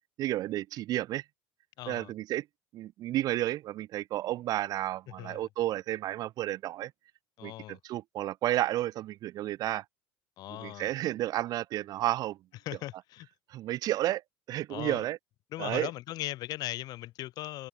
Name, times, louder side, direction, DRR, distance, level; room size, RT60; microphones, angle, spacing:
voice 1, 0.2-1.2 1.9-2.5 2.7-6.9 7.4-9.8 10.5-12.4 13.5-14.2 14.5-15.2 15.6-15.9, right 14 dB, 60° right, 2.1 m, -32 dB
voice 2, 1.8-2.1 5.2-5.5 7.4-7.8 10.4-10.9 12.6-13.3 14.7-15.0 15.5-17.7, left 16 dB, 60° left, 3.0 m, -38 dB
supercardioid pair, 90°, 7 cm